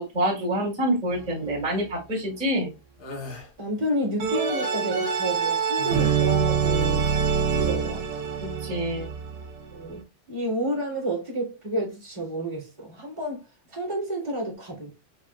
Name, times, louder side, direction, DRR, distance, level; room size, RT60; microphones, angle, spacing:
voice 1, 0.0-2.7 8.4-9.1, equal, 5° right, 1.0 m, -27 dB
sound 1, 1.1-1.6 4.2-9.9, right 6 dB, 70° right, 2.0 m, -25 dB
sound 2, 3.0-3.5 5.8-6.5, left 3 dB, 90° left, 1.1 m, -38 dB
voice 2, 3.6-7.1 7.5-8.2 9.7-10.0 10.3-13.4 13.7-14.9, right 1 dB, 50° right, 0.5 m, -30 dB
5.6 x 3.4 x 2.3 m
omnidirectional pair, 4.3 m